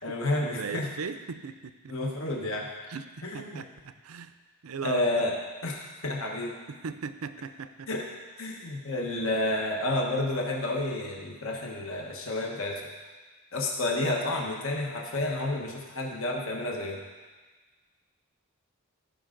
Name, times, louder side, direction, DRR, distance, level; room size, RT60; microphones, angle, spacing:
voice 1, 0.0-0.9 1.9-2.7 3.2-3.6 4.8-6.5 7.9-8.0 8.4-12.9 13.5-17.0, left 2 dB, 65° left, -1 dB, 1.3 m, -30 dB
voice 2, 0.6-1.9 2.9-4.3 4.6-5.3 6.7-7.9, right 5 dB, 75° right, 11 dB, 0.5 m, -38 dB
15.0 x 5.4 x 3.9 m, 1.3 s
head